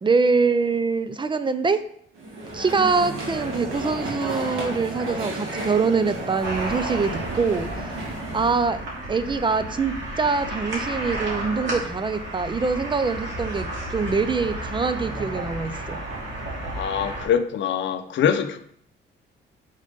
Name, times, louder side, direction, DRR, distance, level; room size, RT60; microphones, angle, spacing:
voice 1, 0.0-1.8 2.5-7.7 8.3-16.0, right 4 dB, 25° right, 0.4 m, -24 dB
sound 1, 2.1-8.5, right 2 dB, 80° right, 1.9 m, -32 dB
sound 2, 6.4-17.2, right 1 dB, 65° right, 2.4 m, -32 dB
voice 2, 16.7-18.6, left 8 dB, 65° left, 0.6 m, -23 dB
5.0 x 4.0 x 5.2 m
cardioid pair, 90°, 20 cm